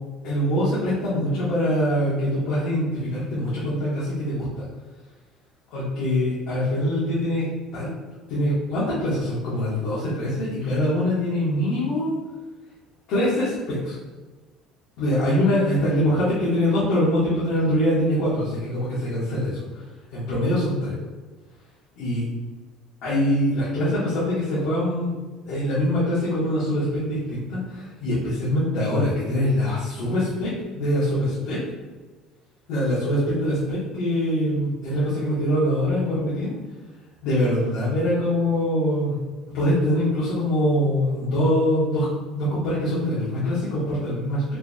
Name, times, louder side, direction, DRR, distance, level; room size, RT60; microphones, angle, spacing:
voice 1, 0.2-4.6 5.7-7.9 8.3-12.1 13.1-14.0 15.0-19.8 20.1-20.9 22.0-22.2 23.0-25.1 25.4-31.6 32.7-36.5 37.2-39.2 39.5-42.1 42.3-44.4, left 1 dB, 75° left, -10 dB, 1.4 m, -23 dB
4.6 x 3.3 x 2.3 m, 1.3 s
supercardioid pair, 105°, 0 cm